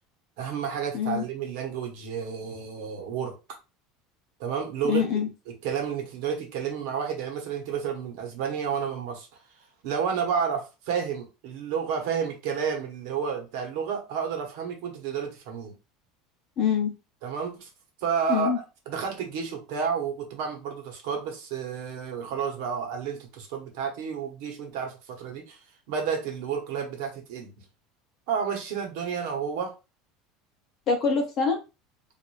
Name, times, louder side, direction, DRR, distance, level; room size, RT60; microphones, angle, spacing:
voice 1, 0.4-3.4 4.4-5.1 5.5-9.3 9.8-15.7 17.2-17.7 18.0-18.5 18.9-25.6 25.9-27.6 28.3-29.7, right 7 dB, 55° right, 1.0 m, -31 dB
voice 2, 4.9-5.3 16.6-16.9 18.3-18.6 30.9-31.6, left 6 dB, 30° left, 0.8 m, -24 dB
4.7 x 2.5 x 2.5 m
cardioid pair, 180°, 0 cm